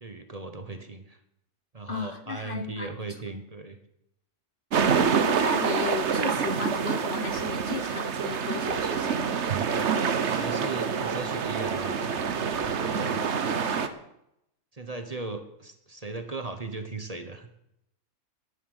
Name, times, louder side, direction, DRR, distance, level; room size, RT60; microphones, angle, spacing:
voice 1, 0.0-1.2 1.7-3.8 10.1-12.0 12.6-13.9 14.7-17.5, right 3 dB, 30° right, 8 dB, 1.1 m, -38 dB
voice 2, 1.9-3.2 5.4-9.3, left 5 dB, 45° left, 9 dB, 0.9 m, -35 dB
sound 1, 4.7-13.9, right 6 dB, 55° right, 1.2 m, -27 dB
11.0 x 11.0 x 8.1 m, 0.80 s
omnidirectional pair, 1.4 m